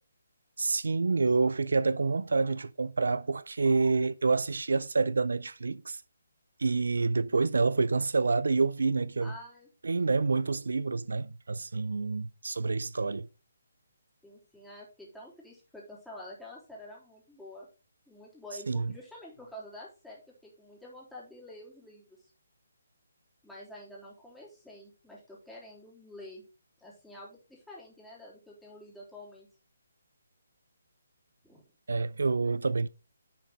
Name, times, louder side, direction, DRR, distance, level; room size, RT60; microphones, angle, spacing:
voice 1, 0.6-6.0 6.6-9.3 9.8-13.3 18.7-18.9 31.9-32.9, right 4 dB, 75° right, 0.4 m, -28 dB
voice 2, 9.2-9.7 14.2-17.7 18.1-22.2 23.4-26.4 26.8-29.5 31.4-31.6, left 1 dB, ahead, 3.5 m, -48 dB
10.5 x 5.1 x 3.9 m
figure-of-eight pair, 145°, 0 cm